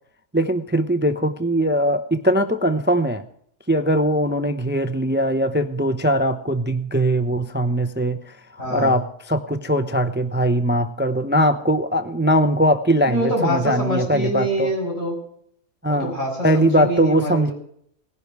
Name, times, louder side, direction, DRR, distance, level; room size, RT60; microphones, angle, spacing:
voice 1, 0.3-3.2 3.7-8.4 8.7-14.7 15.8-16.1 16.4-17.5, equal, 15° right, 10 dB, 0.5 m, -20 dB
voice 2, 8.6-8.9 13.1-15.1 15.9-17.5, equal, 90° left, -1 dB, 6.4 m, -25 dB
18.5 x 11.0 x 4.7 m, 0.69 s
omnidirectional pair, 1.3 m